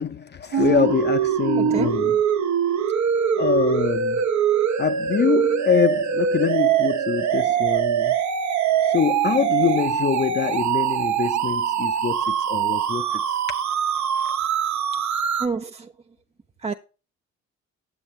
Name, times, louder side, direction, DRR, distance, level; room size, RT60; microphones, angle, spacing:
voice 1, 0.0-2.2 3.4-4.2 4.8-8.2 8.9-13.4 14.1-14.3, left 7 dB, 35° left, 0.6 m, -24 dB
sound 1, 0.5-15.5, right 8 dB, 65° right, 1.0 m, -23 dB
voice 2, 1.6-2.1 14.9-15.9 16.6-16.7, right 4 dB, 20° right, 0.5 m, -30 dB
8.9 x 6.9 x 3.2 m
cardioid pair, 90°, 30 cm